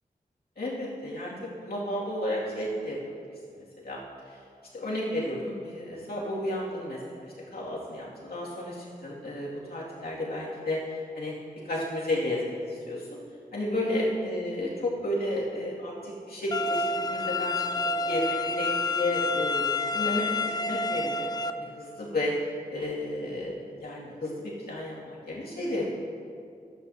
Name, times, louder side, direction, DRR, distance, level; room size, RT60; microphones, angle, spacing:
voice 1, 0.6-3.0 3.5-4.0 4.7-11.3 11.6-13.2 13.5-17.6 18.0-21.3 21.6-22.3 22.7-25.9, left 1 dB, 75° left, -6 dB, 2.4 m, -32 dB
sound 1, 16.5-21.5, left 3 dB, 25° left, 0.5 m, -29 dB
12.5 x 8.4 x 2.8 m, 2.3 s
cardioid pair, 55°, 16 cm